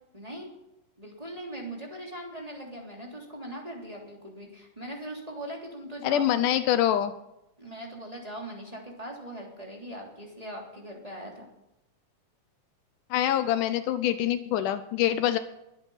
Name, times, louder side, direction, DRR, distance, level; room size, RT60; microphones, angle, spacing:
voice 1, 0.1-0.5 1.0-6.5 7.6-11.4, right 1 dB, 10° right, -2 dB, 2.9 m, -40 dB
voice 2, 6.0-7.1 13.1-15.4, left 11 dB, 80° left, 11 dB, 2.1 m, -25 dB
22.5 x 8.3 x 5.7 m, 0.89 s
omnidirectional pair, 3.8 m